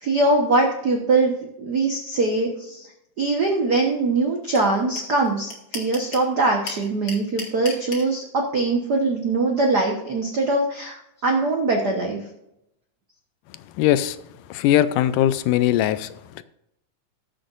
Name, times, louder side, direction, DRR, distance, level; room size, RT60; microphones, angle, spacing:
voice 1, 0.0-2.9 3.2-12.2, right 3 dB, 75° right, 1 dB, 0.9 m, -22 dB
sound 1, 4.5-4.6 5.0-5.1 5.2-6.3 6.7-8.0, left 4 dB, 40° left, 2.3 m, -33 dB
voice 2, 13.8-14.2 14.5-16.1 16.4-16.5, left 12 dB, 85° left, 13 dB, 2.1 m, -20 dB
19.0 x 7.7 x 2.5 m, 0.83 s
omnidirectional pair, 3.7 m